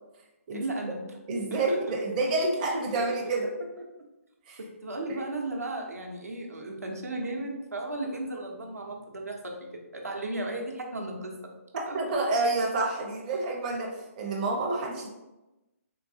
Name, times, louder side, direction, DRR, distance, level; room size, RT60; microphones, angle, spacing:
voice 1, 0.5-1.0 1.5-2.0 4.6-11.5 11.9-12.0, right 2 dB, 80° right, 1 dB, 0.7 m, -35 dB
voice 2, 1.3-3.5 4.5-4.6 5.1-5.2 11.9-15.1, right 2 dB, 30° right, -1 dB, 0.6 m, -28 dB
3.8 x 2.3 x 2.6 m, 1.0 s
figure-of-eight pair, 140°, 8 cm